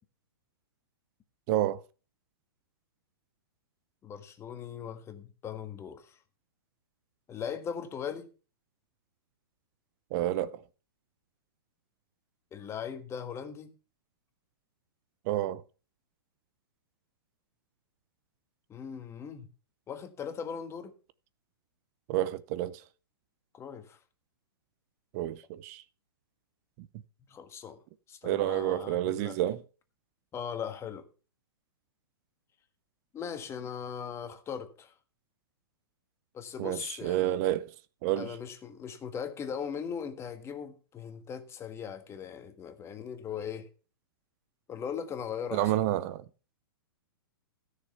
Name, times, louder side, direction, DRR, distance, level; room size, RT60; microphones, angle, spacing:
voice 1, 1.5-1.8 10.1-10.6 15.3-15.6 22.1-22.8 25.1-25.8 26.8-26.9 28.2-29.6 36.6-37.6 38.0-38.4 45.5-46.2, right 13 dB, 40° right, 0.6 m, -29 dB
voice 2, 4.0-6.2 7.3-8.3 12.5-13.7 18.7-19.5 19.9-20.9 23.5-24.0 27.3-27.8 28.1-29.4 30.3-31.0 33.1-34.9 36.3-37.4 38.2-43.7 44.7-45.6, left 7 dB, 20° left, 1.6 m, -39 dB
14.0 x 6.5 x 5.6 m
hypercardioid pair, 120°, 13 cm